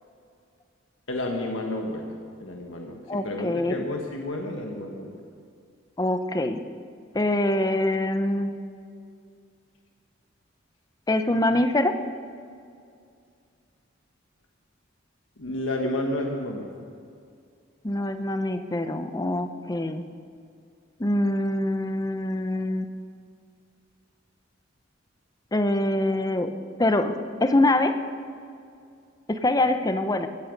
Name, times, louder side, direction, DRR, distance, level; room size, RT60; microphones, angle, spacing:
voice 1, 1.1-5.2 15.4-16.9, left 1 dB, 80° left, 1 dB, 1.5 m, -31 dB
voice 2, 3.1-3.8 6.0-6.6 7.1-8.6 11.1-11.9 17.8-20.0 21.0-22.9 25.5-26.5 26.8-28.0 29.3-30.3, left 1 dB, 20° left, 9 dB, 0.7 m, -24 dB
16.0 x 14.5 x 5.3 m, 2.3 s
head